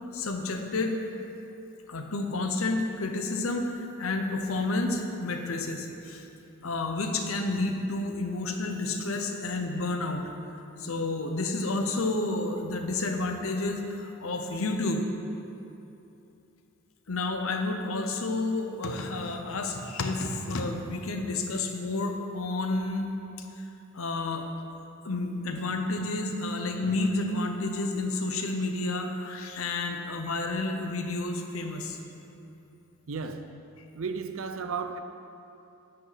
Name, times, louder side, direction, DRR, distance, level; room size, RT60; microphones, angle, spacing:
voice 1, 0.1-1.0 1.9-6.2 6.6-10.2 10.8-15.0 17.1-23.1 23.4-23.7 23.9-24.4 25.0-32.0, left 2 dB, 75° left, 4 dB, 0.9 m, -30 dB
voice 2, 33.1-33.5 33.9-35.0, right 5 dB, 65° right, 8 dB, 0.6 m, -34 dB
9.9 x 5.5 x 5.8 m, 2.8 s
head